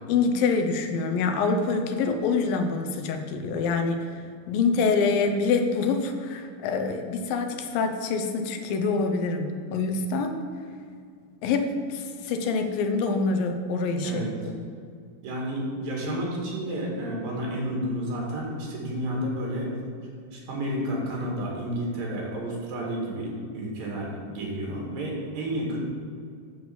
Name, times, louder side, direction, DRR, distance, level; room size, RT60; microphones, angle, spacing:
voice 1, 0.1-4.2 4.5-10.4 11.4-14.7, left 4 dB, 85° left, 6 dB, 2.7 m, -26 dB
voice 2, 15.2-19.7 20.3-25.8, right 1 dB, 85° right, -2 dB, 4.0 m, -31 dB
12.0 x 4.9 x 7.1 m, 2.2 s
omnidirectional pair, 4.0 m